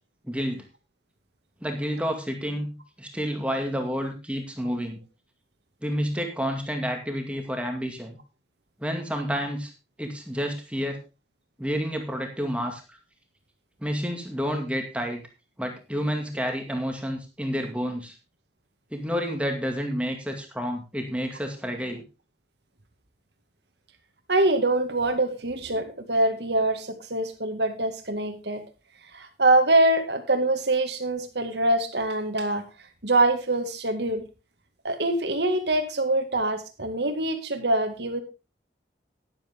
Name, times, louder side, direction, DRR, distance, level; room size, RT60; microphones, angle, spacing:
voice 1, 0.3-0.6 1.6-5.0 5.8-8.2 8.8-9.7 10.0-11.0 11.6-13.0 13.8-15.2 15.6-18.1 18.9-22.0, equal, 5° right, 3 dB, 2.1 m, -30 dB
voice 2, 24.3-28.6 29.1-32.6 33.0-34.2 34.8-38.2, right 2 dB, 65° right, 7 dB, 2.0 m, -24 dB
11.5 x 10.5 x 3.6 m, 0.30 s
head